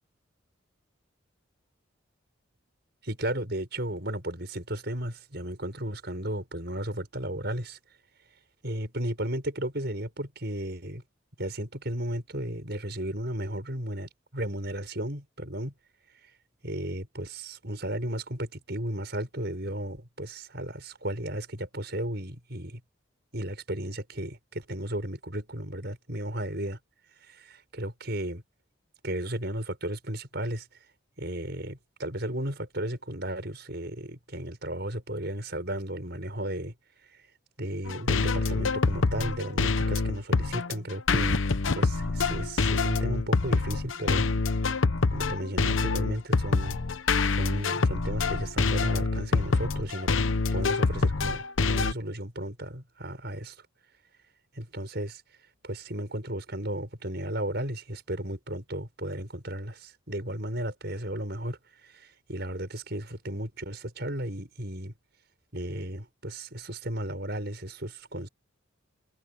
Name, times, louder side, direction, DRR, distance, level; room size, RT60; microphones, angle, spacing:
voice 1, 3.0-7.8 8.6-11.0 11.4-15.7 16.2-16.3 16.6-22.8 23.3-26.8 27.2-28.4 29.0-30.7 31.2-36.7 37.0-37.3 37.6-41.4 41.7-44.3 45.1-46.8 47.3-50.1 50.5-53.6 54.5-55.2 55.6-64.9 65.5-68.3, right 1 dB, 55° right, 6.7 m, -34 dB
sound 1, 37.9-51.9, left 3 dB, 75° left, 0.9 m, -26 dB
head